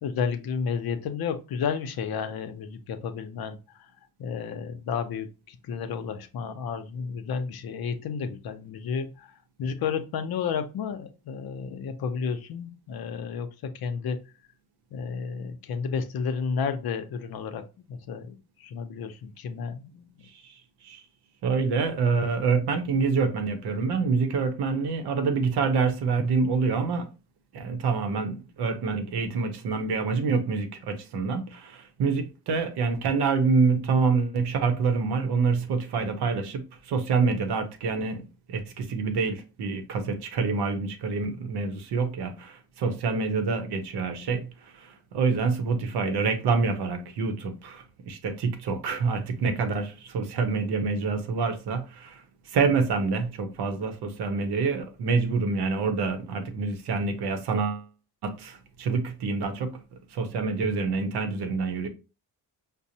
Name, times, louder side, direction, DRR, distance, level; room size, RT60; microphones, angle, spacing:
voice 1, 0.0-3.9 4.2-14.3 14.9-20.1, left 6 dB, 65° left, 0.6 m, -32 dB
voice 2, 21.4-27.1 27.5-52.2 52.5-57.9 58.2-59.8 60.1-61.9, right 4 dB, 85° right, 0.7 m, -27 dB
5.1 x 2.0 x 2.7 m
cardioid pair, 85°, 39 cm